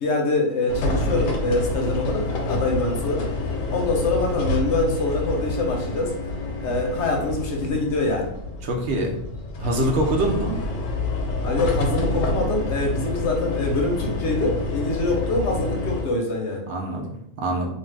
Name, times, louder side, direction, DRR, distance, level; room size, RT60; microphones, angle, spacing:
voice 1, 0.0-3.3 3.7-6.1 6.6-8.3 11.4-16.7, left 2 dB, 65° left, 1 dB, 0.8 m, -24 dB
sound 1, 0.7-16.0, left 2 dB, 85° left, 1.0 m, -28 dB
voice 2, 8.6-9.2 9.6-10.6 16.7-17.7, right 1 dB, 65° right, 1 dB, 0.8 m, -24 dB
2.5 x 2.2 x 3.2 m, 0.74 s
omnidirectional pair, 1.3 m